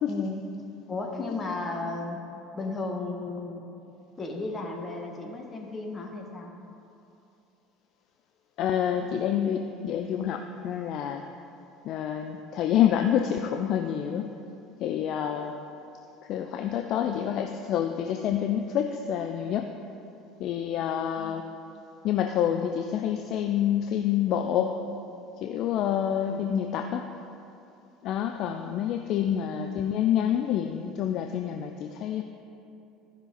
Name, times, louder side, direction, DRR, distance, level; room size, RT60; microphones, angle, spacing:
voice 1, 0.1-0.5 0.9-2.2 2.5-3.6 4.2-6.5 21.2-21.4 26.1-26.5, left 3 dB, 25° left, 1 dB, 1.6 m, -35 dB
voice 2, 8.6-11.2 11.8-14.3 14.8-15.5 16.3-19.7 20.4-21.4 22.0-24.7 25.4-27.0 28.0-32.2, left 9 dB, 55° left, 5 dB, 0.5 m, -27 dB
14.5 x 5.6 x 4.0 m, 2.8 s
figure-of-eight pair, 65°, 0 cm